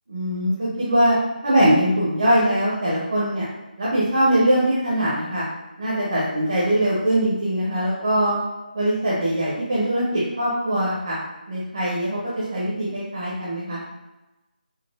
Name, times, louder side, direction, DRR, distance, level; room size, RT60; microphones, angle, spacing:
voice 1, 0.1-1.2 1.4-3.5 3.8-5.5 5.8-8.5 8.7-11.2 11.5-13.8, right 1 dB, 30° right, -8 dB, 0.5 m, -22 dB
4.0 x 2.0 x 2.3 m, 1.1 s
figure-of-eight pair, 180°, 5 cm